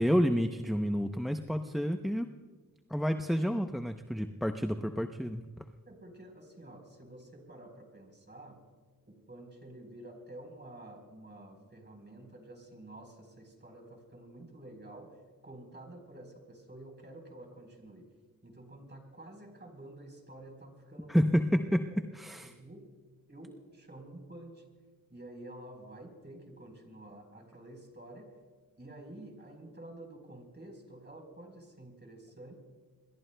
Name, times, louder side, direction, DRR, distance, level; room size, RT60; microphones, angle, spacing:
voice 1, 0.0-2.3 2.9-5.4 21.1-21.9 22.2-22.5, equal, ahead, 6 dB, 0.7 m, -29 dB
voice 2, 5.9-8.6 9.1-18.1 18.4-21.2 21.9-22.0 22.4-22.9 23.3-24.6 25.1-28.4 28.8-32.5, right 1 dB, 30° right, 3 dB, 4.1 m, -50 dB
27.0 x 22.5 x 2.2 m, 1.4 s
wide cardioid pair, 70°, 36 cm